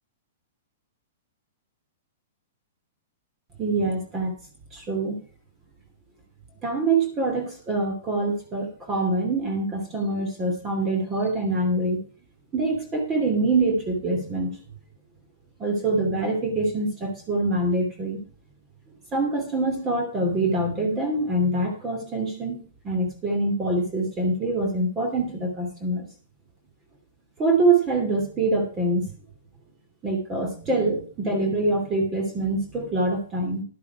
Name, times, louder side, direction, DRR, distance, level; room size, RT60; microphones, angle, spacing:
voice 1, 3.6-4.3 4.7-5.2 6.6-12.0 12.5-14.6 15.6-18.2 19.1-26.1 27.4-29.1 30.0-33.6, right 2 dB, 25° right, 4 dB, 2.9 m, -25 dB
11.5 x 9.8 x 4.8 m, 0.41 s
hypercardioid pair, 130°, 0 cm